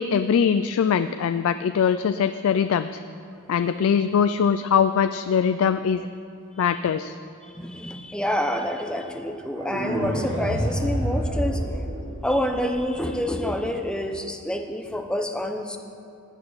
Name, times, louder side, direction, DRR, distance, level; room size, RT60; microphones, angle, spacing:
voice 1, 0.0-3.0 3.5-6.1 6.6-7.1, left 7 dB, 75° left, 11 dB, 0.3 m, -22 dB
voice 2, 7.5-11.8 12.2-15.8, equal, 5° left, 5 dB, 0.7 m, -27 dB
sound 1, 9.6-12.6, equal, 55° right, 2.5 m, -27 dB
16.0 x 9.0 x 4.0 m, 2.7 s
head